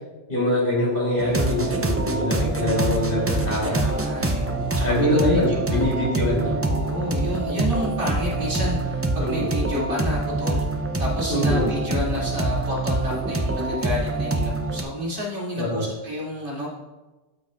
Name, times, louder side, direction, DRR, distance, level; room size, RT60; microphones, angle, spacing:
voice 1, 0.3-3.7 4.8-6.6 9.2-9.5 11.3-11.6 15.6-15.8, left 1 dB, 50° left, -6 dB, 3.3 m, -23 dB
sound 1, 1.2-14.8, right 2 dB, 25° right, 0.3 m, -25 dB
voice 2, 3.6-6.1 6.7-16.7, left 1 dB, 45° right, -6 dB, 2.4 m, -30 dB
12.5 x 5.9 x 2.4 m, 1.2 s
omnidirectional pair, 1.2 m